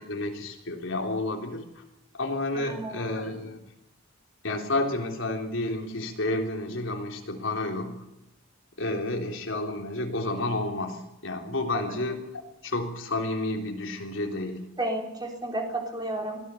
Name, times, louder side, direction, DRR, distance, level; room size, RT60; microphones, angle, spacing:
voice 1, 0.0-1.8 2.1-3.6 4.4-8.0 8.8-12.3 12.6-14.7, left 2 dB, 75° left, 2 dB, 3.6 m, -30 dB
voice 2, 2.5-3.0 11.7-11.9 14.8-16.4, right 1 dB, 20° right, 1 dB, 3.8 m, -32 dB
23.0 x 16.0 x 7.0 m, 0.92 s
head